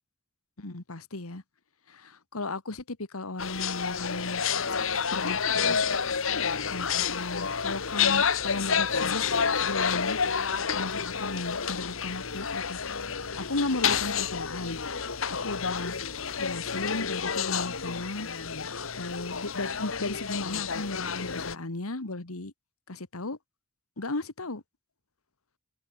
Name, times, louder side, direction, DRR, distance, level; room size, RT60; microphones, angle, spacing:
voice 1, 0.6-1.4 1.9-4.4 5.1-5.8 6.7-10.2 10.7-12.8 13.4-14.8 15.4-16.0 16.4-18.3 19.0-22.5 22.9-23.4 24.0-24.6, left 2 dB, 85° left, 1.9 m, -35 dB
sound 1, 3.4-21.5, left 6 dB, 65° left, 1.5 m, -29 dB
head